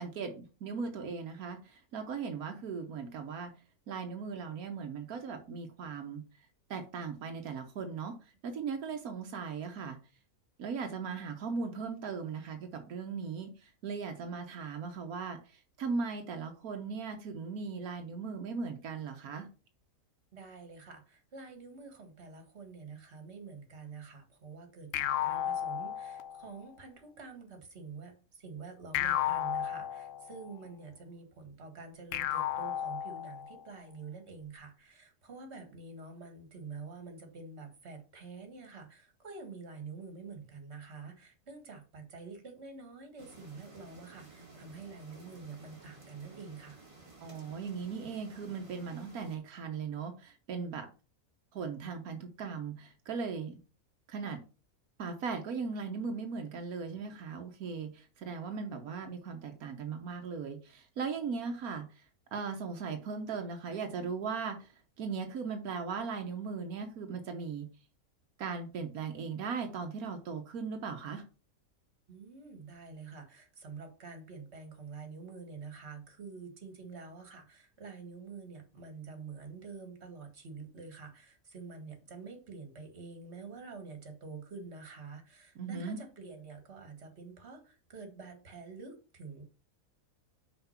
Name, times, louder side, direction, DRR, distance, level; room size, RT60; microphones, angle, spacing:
voice 1, 0.0-3.5 3.9-6.2 6.7-8.1 8.4-10.0 10.6-19.5 47.2-50.9 51.5-53.6 54.1-54.4 55.0-62.0 62.3-67.7 68.4-71.3 85.6-86.0, right 5 dB, 85° right, 5 dB, 1.4 m, -38 dB
voice 2, 20.3-46.8 72.1-89.4, right 4 dB, 50° right, 5 dB, 1.9 m, -47 dB
sound 1, 24.9-26.6 28.9-30.5 32.1-33.6, left 11 dB, 70° left, 0.9 m, -33 dB
sound 2, 43.2-49.4, right 3 dB, 25° right, 1.5 m, -55 dB
5.8 x 4.6 x 5.6 m, 0.35 s
omnidirectional pair, 1.5 m